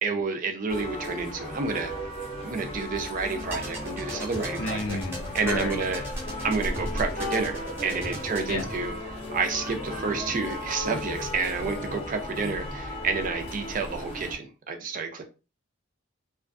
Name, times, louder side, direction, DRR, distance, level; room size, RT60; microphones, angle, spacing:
voice 1, 0.0-1.9 2.4-5.0 5.3-6.0 6.4-15.2, right 4 dB, 40° right, 0.4 m, -30 dB
sound 1, 0.7-14.4, left 1 dB, 30° left, 0.6 m, -35 dB
sound 2, 3.4-8.7, right 1 dB, 10° right, 0.8 m, -38 dB
voice 2, 4.6-5.9 8.5-8.7, left 3 dB, 90° left, 0.5 m, -32 dB
2.4 x 2.3 x 2.5 m
head